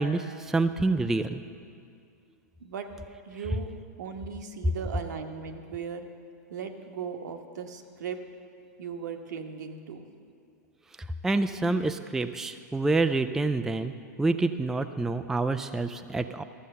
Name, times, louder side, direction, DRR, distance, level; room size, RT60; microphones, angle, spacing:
voice 1, 0.0-1.4 11.2-13.9 14.2-16.4, right 3 dB, 5° right, 9 dB, 0.3 m, -27 dB
voice 2, 3.2-3.7 4.0-6.0 6.5-8.2 8.8-10.0, right 6 dB, 70° right, 5 dB, 1.1 m, -37 dB
13.5 x 7.3 x 6.6 m, 2.3 s
hypercardioid pair, 115°, 10 cm